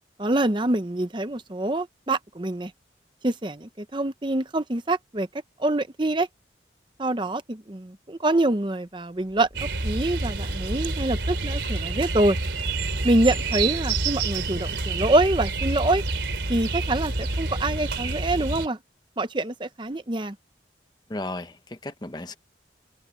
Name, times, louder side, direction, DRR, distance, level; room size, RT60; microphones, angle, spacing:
voice 1, 0.2-2.7 3.2-5.3 5.6-6.3 7.0-9.5 9.8-12.4 13.0-16.0 16.5-18.8 19.2-20.3, right 2 dB, 25° right, 0.8 m, -25 dB
sound 1, 8.9-16.2, equal, 55° left, 6.3 m, -52 dB
sound 2, 9.5-18.7, right 3 dB, 85° right, 3.4 m, -28 dB
voice 2, 21.1-22.4, left 2 dB, 25° left, 0.9 m, -34 dB
head